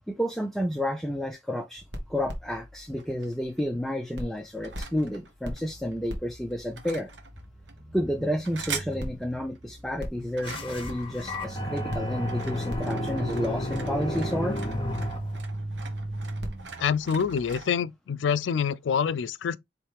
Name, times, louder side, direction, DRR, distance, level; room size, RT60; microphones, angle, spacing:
voice 1, 0.1-1.8 2.1-7.1 7.9-14.6, equal, ahead, 0.5 m, -31 dB
sound 1, 1.8-3.8 4.2-17.6, right 1 dB, 65° right, 1.3 m, -39 dB
sound 2, 3.0-3.9 4.4-6.0 6.5-7.8 8.2-9.0 9.2-9.6 10.1-17.7, right 5 dB, 90° right, 1.0 m, -43 dB
sound 3, 10.4-15.4, left 1 dB, 30° left, 0.9 m, -32 dB
voice 2, 16.8-19.6, left 7 dB, 90° left, 0.4 m, -26 dB
4.6 x 3.2 x 3.3 m
head